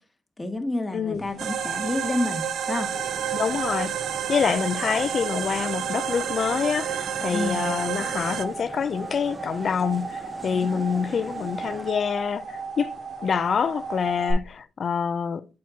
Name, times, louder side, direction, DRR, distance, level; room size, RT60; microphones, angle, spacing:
voice 1, 0.4-2.9 7.3-7.7 10.4-10.8, left 2 dB, 15° left, 1.2 m, -29 dB
sound 1, 1.1-14.3, right 4 dB, 60° right, 3.4 m, -36 dB
sound 2, 1.4-8.5, right 10 dB, 85° right, 0.3 m, -30 dB
sound 3, 2.9-11.9, right 1 dB, 15° right, 0.6 m, -42 dB
voice 2, 3.3-4.0 4.3-12.9 13.2-15.5, left 6 dB, 50° left, 0.4 m, -26 dB
7.4 x 4.3 x 3.6 m
cardioid pair, 115°, 0 cm